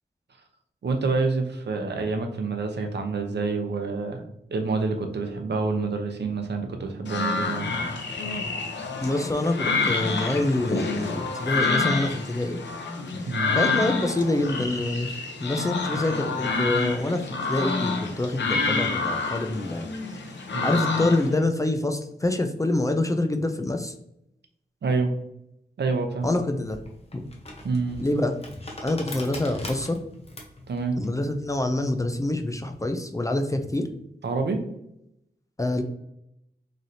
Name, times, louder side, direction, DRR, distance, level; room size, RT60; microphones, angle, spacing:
voice 1, 0.8-4.2 4.5-7.7 13.3-13.5 20.5-20.8 24.8-25.1 25.8-26.4 27.6-28.0 30.7-31.0 34.2-34.6, right 4 dB, 70° right, 5 dB, 0.6 m, -27 dB
sound 1, 7.1-21.3, left 4 dB, 75° left, 0.7 m, -28 dB
voice 2, 9.0-12.6 13.5-15.1 15.4-19.9 20.6-23.9 26.2-26.8 27.1-27.3 28.0-28.3 28.8-30.0 31.0-33.9 35.6-35.8, left 2 dB, 20° left, 5 dB, 0.3 m, -26 dB
sound 2, 26.2-32.9, left 1 dB, 35° left, 0.8 m, -42 dB
4.0 x 3.2 x 2.7 m, 0.80 s
wide cardioid pair, 95°, 18 cm